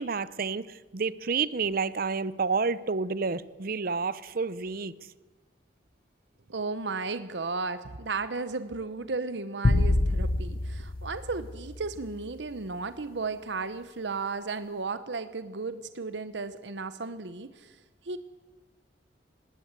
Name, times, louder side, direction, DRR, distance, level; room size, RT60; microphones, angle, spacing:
voice 1, 0.0-4.9, right 4 dB, 55° right, 18 dB, 0.7 m, -29 dB
voice 2, 6.5-17.8 18.0-18.2, right 4 dB, 85° right, 13 dB, 0.9 m, -34 dB
sound 1, 9.6-12.1, left 2 dB, 55° left, 0.7 m, -26 dB
19.5 x 17.0 x 8.2 m, 1.2 s
head